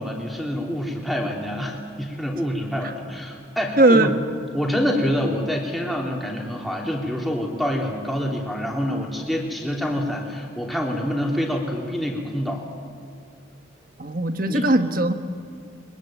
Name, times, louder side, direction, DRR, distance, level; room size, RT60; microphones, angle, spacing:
voice 1, 0.0-4.1 4.5-12.7 14.5-14.6, equal, ahead, -1 dB, 3.0 m, -26 dB
voice 2, 3.8-4.2 14.0-15.1, right 2 dB, 45° right, 8 dB, 1.3 m, -18 dB
22.5 x 21.5 x 9.1 m, 2.3 s
head